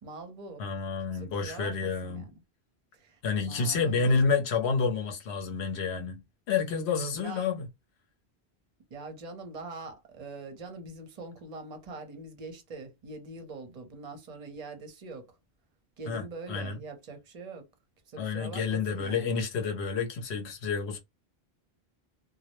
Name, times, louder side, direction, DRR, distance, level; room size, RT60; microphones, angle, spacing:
voice 1, 0.0-0.6 1.1-2.3 2.9-4.1 7.1-7.5 8.9-15.3 16.0-17.7 18.1-19.4, right 3 dB, 45° right, 0.7 m, -43 dB
voice 2, 0.6-2.3 3.2-7.7 16.1-16.8 18.2-21.0, left 5 dB, 85° left, 0.9 m, -29 dB
2.2 x 2.0 x 2.9 m
omnidirectional pair, 1.1 m